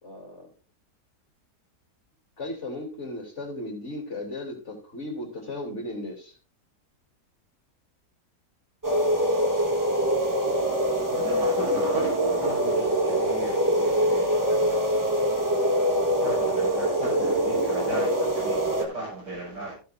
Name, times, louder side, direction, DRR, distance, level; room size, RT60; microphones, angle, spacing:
voice 1, 0.0-0.5 2.4-6.4 16.2-16.3, left 1 dB, 45° left, 3.4 m, -36 dB
sound 1, 8.8-18.8, equal, 10° right, 1.4 m, -24 dB
voice 2, 11.1-14.9 15.7-19.7, right 2 dB, 90° right, 6.6 m, -36 dB
15.0 x 8.3 x 2.6 m
omnidirectional pair, 1.8 m